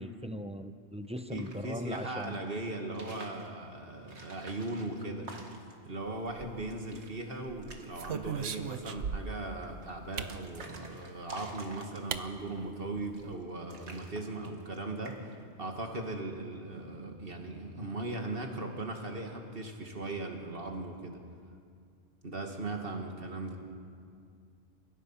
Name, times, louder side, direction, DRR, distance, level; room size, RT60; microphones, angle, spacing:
voice 1, 0.0-2.4, equal, 5° right, 9 dB, 0.5 m, -39 dB
sound 1, 1.0-2.4 2.8-3.5 4.0-5.9 6.3-6.4 6.6-7.1 7.4-8.1 8.4-8.9 9.6-12.3 13.0-13.4 13.7-14.8 15.0-15.4, right 2 dB, 70° right, 2.3 m, -50 dB
voice 2, 1.3-5.3 5.9-21.2 22.2-23.6, right 2 dB, 50° right, 3 dB, 2.3 m, -38 dB
sound 2, 6.3-7.0 7.5-9.5 10.2-10.4 11.5-11.6 12.1-12.3 12.6-12.7 13.0-13.4, right 7 dB, 85° right, 1.2 m, -38 dB
29.5 x 16.0 x 5.8 m, 2.3 s
omnidirectional pair, 1.2 m